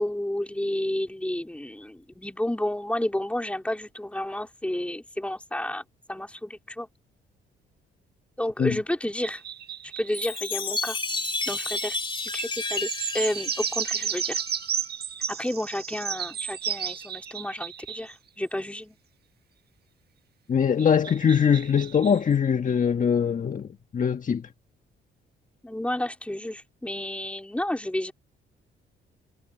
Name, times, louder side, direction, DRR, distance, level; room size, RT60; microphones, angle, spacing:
voice 1, 0.0-5.8 6.1-6.9 8.4-9.4 10.0-11.0 11.5-12.9 13.1-14.4 15.3-19.0 25.6-28.1, left 1 dB, 5° left, 4.1 m, -31 dB
sound 1, 9.2-10.6 12.5-18.1 20.8-22.2, right 8 dB, 55° right, 1.5 m, -33 dB
Chime, 10.1-14.8, left 3 dB, 25° left, 2.7 m, -32 dB
voice 2, 20.5-24.5, left 7 dB, 40° left, 1.5 m, -22 dB
cardioid pair, 90°, 20 cm